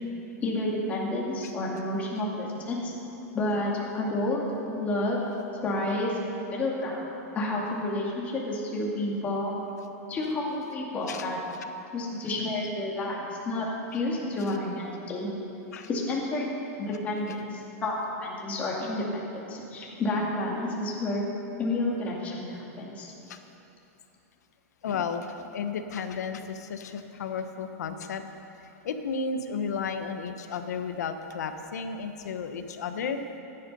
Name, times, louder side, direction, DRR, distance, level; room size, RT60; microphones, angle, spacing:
voice 1, 0.4-2.9 3.3-5.2 5.6-7.0 7.3-9.5 10.1-11.4 11.9-15.3 15.9-16.5 16.8-21.2 21.6-23.1, left 2 dB, 15° left, -3 dB, 2.2 m, -30 dB
voice 2, 24.8-28.2 28.8-33.2, left 5 dB, 85° left, 8 dB, 1.1 m, -33 dB
15.5 x 11.0 x 5.4 m, 2.9 s
supercardioid pair, 165°, 9 cm